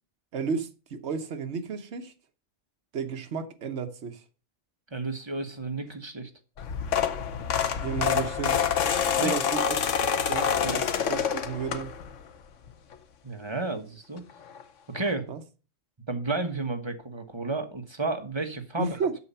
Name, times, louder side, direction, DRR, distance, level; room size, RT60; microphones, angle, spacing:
voice 1, 0.3-2.1 2.9-4.2 7.8-8.6 9.1-9.9 10.3-11.9 15.3-15.4 18.8-19.1, right 5 dB, 60° right, 1.3 m, -32 dB
voice 2, 4.9-6.3 9.2-9.3 10.6-10.8 13.2-14.2 14.9-15.3 16.1-19.0, right 3 dB, 20° right, 1.2 m, -32 dB
sound 1, 6.6-12.2 12.7-12.9 14.2-14.3 14.5-14.6 14.9-15.1, left 7 dB, 70° left, 1.2 m, -27 dB
8.3 x 6.7 x 5.6 m
omnidirectional pair, 1.3 m